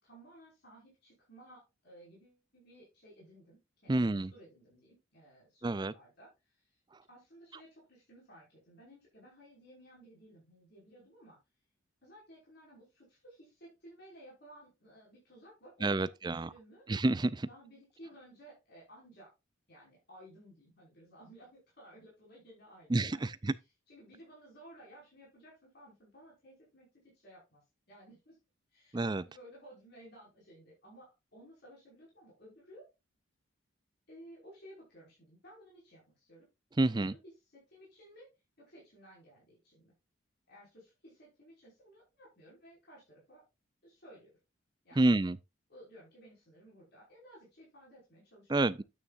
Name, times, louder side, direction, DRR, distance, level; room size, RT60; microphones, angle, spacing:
voice 1, 0.0-6.8 7.1-11.4 12.0-16.0 16.2-16.9 17.4-19.3 19.7-23.3 23.9-27.6 27.9-28.4 28.7-32.9 34.1-36.5 37.1-38.3 38.6-39.9 40.5-43.4 43.8-44.3 44.8-45.2 45.7-48.8, right 1 dB, 50° left, 5.4 m, -56 dB
voice 2, 3.9-4.3 5.6-5.9 15.8-16.5 16.9-17.5 22.9-23.5 28.9-29.2 36.8-37.1 45.0-45.4 48.5-48.8, right 2 dB, 20° right, 0.4 m, -29 dB
9.8 x 8.7 x 2.5 m
head